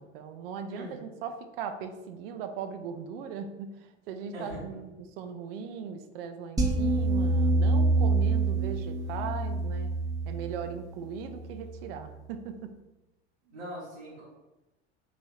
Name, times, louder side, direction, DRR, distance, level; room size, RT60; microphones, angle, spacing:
voice 1, 0.0-3.7 4.1-4.9 5.2-9.9 10.3-12.7, right 6 dB, 60° right, 7 dB, 0.5 m, -38 dB
voice 2, 0.7-1.0 4.3-4.8 13.4-14.2, equal, 85° right, -7 dB, 1.3 m, -41 dB
sound 1, 6.6-11.8, right 2 dB, 10° right, 0.6 m, -27 dB
3.2 x 2.9 x 2.4 m, 1.0 s
hypercardioid pair, 80°, 33 cm